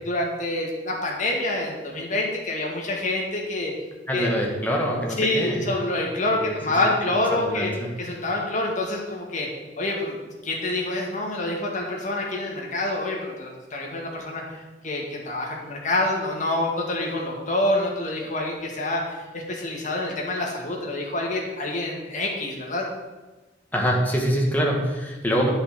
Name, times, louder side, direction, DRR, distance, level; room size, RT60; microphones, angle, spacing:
voice 1, 0.0-3.7 4.1-4.3 5.2-7.7 8.0-9.5 9.8-10.2 10.4-22.9, left 2 dB, 45° left, -1 dB, 2.0 m, -27 dB
voice 2, 4.1-5.6 6.3-7.0 7.3-7.9 23.7-25.5, equal, 10° left, -1 dB, 1.6 m, -25 dB
9.8 x 5.5 x 6.2 m, 1.2 s
head